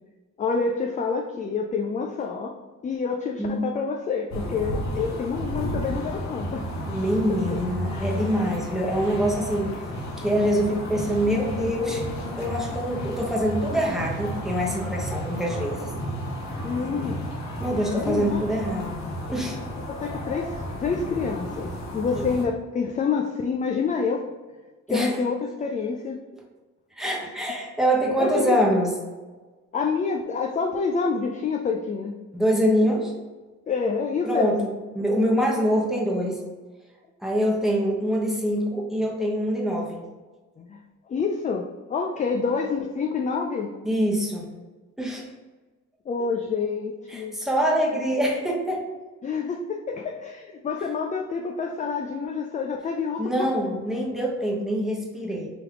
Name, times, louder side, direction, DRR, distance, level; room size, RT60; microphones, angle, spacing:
voice 1, 0.4-2.5 2.8-6.7 7.3-7.4 16.6-17.2 18.1-18.4 19.9-24.3 24.9-26.2 28.2-28.6 29.7-32.2 33.7-34.6 40.6-40.8 41.1-43.7 46.1-47.4 49.2-53.5, left 5 dB, 25° left, 2 dB, 0.4 m, -27 dB
sound 1, 4.3-22.4, equal, 65° left, 1.1 m, -32 dB
voice 2, 6.9-9.8 10.2-12.1 12.4-15.9 16.9-17.1 17.6-19.0 19.3-19.6 22.1-22.2 24.9-25.2 27.0-28.9 32.3-33.1 34.2-36.4 37.2-40.0 43.8-44.5 45.0-45.3 47.1-48.8 53.2-55.5, equal, ahead, -3 dB, 1.0 m, -25 dB
3.5 x 3.1 x 3.5 m, 1.3 s
cardioid pair, 90°, 30 cm